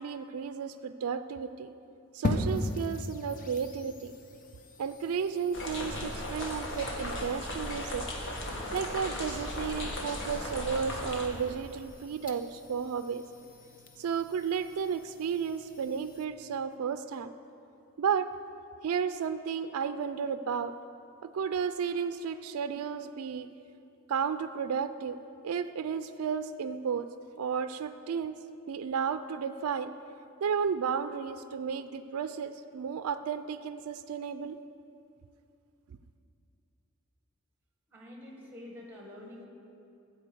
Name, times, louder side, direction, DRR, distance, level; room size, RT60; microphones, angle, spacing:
voice 1, 0.0-1.7 2.1-4.1 4.8-8.1 8.7-13.2 14.0-17.3 18.0-18.3 18.8-20.7 21.2-23.5 24.1-25.2 25.4-27.1 27.4-28.4 28.7-29.9 30.4-34.6, right 6 dB, 75° right, 10 dB, 0.4 m, -33 dB
sound 1, 2.2-16.2, left 1 dB, 40° left, 0.8 m, -41 dB
sound 2, 5.5-11.3, left 1 dB, 60° left, 1.4 m, -36 dB
voice 2, 37.9-39.5, left 1 dB, 10° right, 0 dB, 1.6 m, -47 dB
12.5 x 4.5 x 7.8 m, 2.7 s
head